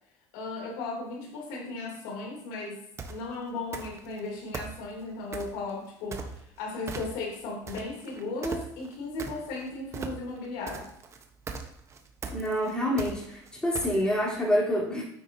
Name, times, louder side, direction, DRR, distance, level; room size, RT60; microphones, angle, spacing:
voice 1, 0.3-2.8 3.1-10.9, left 3 dB, 85° left, -1 dB, 3.0 m, -36 dB
sound 1, 3.0-3.2 3.7-4.2 4.5-5.6 6.1-6.6 6.9-7.4 7.7-14.2, right 5 dB, 30° right, 1.1 m, -38 dB
voice 2, 12.3-15.0, equal, 10° left, -6 dB, 3.6 m, -27 dB
9.7 x 8.1 x 2.8 m, 0.73 s
cardioid pair, 120°, 9 cm